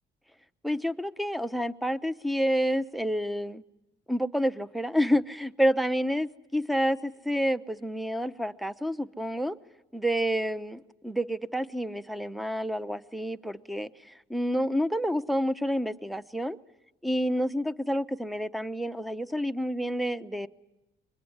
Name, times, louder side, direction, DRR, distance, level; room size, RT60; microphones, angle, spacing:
voice 1, 0.6-3.6 4.1-9.6 9.9-16.6 17.0-20.5, equal, ahead, 14 dB, 0.9 m, -29 dB
23.5 x 22.0 x 9.9 m, 0.98 s
cardioid pair, 90°, 20 cm